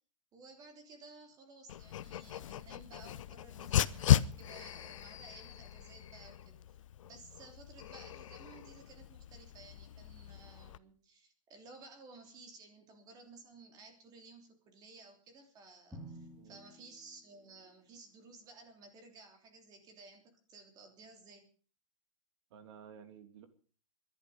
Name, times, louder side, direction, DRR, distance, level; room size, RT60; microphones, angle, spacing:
voice 1, 0.3-6.6 7.0-21.5, right 3 dB, 25° right, 5 dB, 3.2 m, -56 dB
Dog, 1.7-10.8, left 11 dB, 75° left, 0.8 m, -35 dB
Drum, 15.9-17.9, right 1 dB, 5° right, 3.5 m, -52 dB
voice 2, 22.5-23.5, right 7 dB, 55° right, 8 dB, 2.7 m, -53 dB
22.0 x 11.5 x 5.1 m, 0.42 s
supercardioid pair, 155°, 17 cm